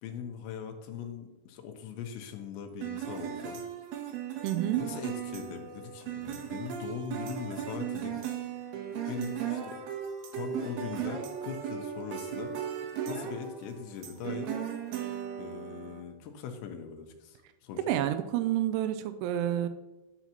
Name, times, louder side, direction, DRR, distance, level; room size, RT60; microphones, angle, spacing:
voice 1, 0.0-3.6 4.8-8.2 9.1-9.8 10.3-12.5 13.1-14.5 15.4-18.0, left 7 dB, 80° left, 4 dB, 3.1 m, -40 dB
sound 1, 2.8-16.0, right 9 dB, 75° right, 2.6 m, -37 dB
voice 2, 4.4-4.8 17.9-19.7, right 12 dB, 90° right, 10 dB, 3.0 m, -29 dB
12.0 x 8.0 x 2.9 m, 1.1 s
omnidirectional pair, 5.3 m